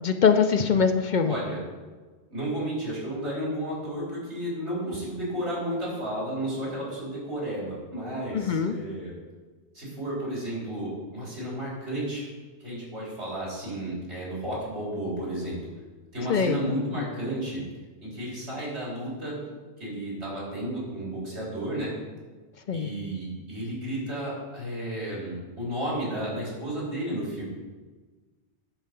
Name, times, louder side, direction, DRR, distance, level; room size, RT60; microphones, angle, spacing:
voice 1, 0.0-1.3 8.3-8.7 16.3-16.6 22.7-22.9, left 6 dB, 50° left, 7 dB, 0.6 m, -22 dB
voice 2, 1.2-1.6 2.3-9.2 9.7-12.2 12.6-15.6 16.1-17.6 18.0-19.4 19.8-21.9 22.7-27.4, right 1 dB, 75° right, -6 dB, 4.1 m, -32 dB
10.5 x 4.7 x 6.7 m, 1.3 s
omnidirectional pair, 1.1 m